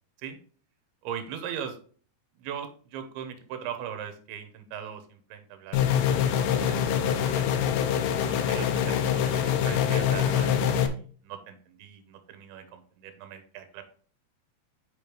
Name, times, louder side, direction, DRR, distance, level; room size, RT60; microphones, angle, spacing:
voice 1, 1.0-1.8 2.4-5.9 6.3-7.6 8.3-10.5 10.9-13.8, right 8 dB, 80° right, 8 dB, 2.8 m, -40 dB
sound 1, 5.7-10.9, left 9 dB, 80° left, 2.0 m, -25 dB
7.7 x 5.1 x 3.2 m, 0.43 s
omnidirectional pair, 4.6 m